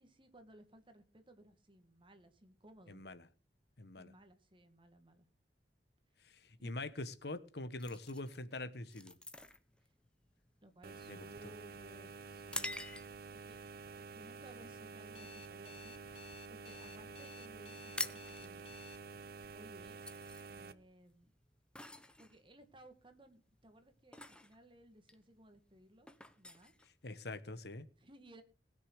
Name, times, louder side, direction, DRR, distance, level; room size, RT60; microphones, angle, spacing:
voice 1, 0.0-3.0 4.0-5.3 6.2-6.3 6.6-6.7 9.8-9.9 10.6-12.8 13.5-13.6 13.9-16.0 16.5-18.7 19.5-20.0 20.5-21.3 22.2-26.1 26.4-26.7 28.0-28.4, right 1 dB, 30° right, 2.1 m, -60 dB
voice 2, 2.9-3.2 3.8-4.1 6.2-9.2 11.1-11.5 27.0-27.9, left 2 dB, 65° left, 1.2 m, -44 dB
sound 1, 7.8-13.4 13.9-14.2 14.7-15.0 15.3-16.5 16.8-16.9 17.1-17.3 17.6-27.6, left 2 dB, 5° left, 1.0 m, -47 dB
sound 2, 10.8-20.7, right 4 dB, 60° right, 0.9 m, -50 dB
Alarm, 15.1-19.0, left 8 dB, 35° left, 0.6 m, -56 dB
20.0 x 6.8 x 6.5 m
head